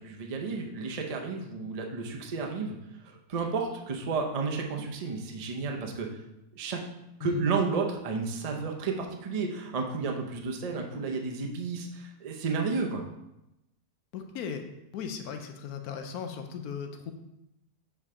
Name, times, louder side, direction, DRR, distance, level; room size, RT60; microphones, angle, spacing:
voice 1, 0.0-2.8 3.0-6.1 6.6-6.8 7.2-13.0, right 4 dB, 55° right, 2 dB, 0.4 m, -32 dB
voice 2, 14.1-14.6 14.9-17.1, left 7 dB, 75° left, 5 dB, 1.1 m, -37 dB
6.7 x 4.8 x 3.6 m, 0.89 s
omnidirectional pair, 1.6 m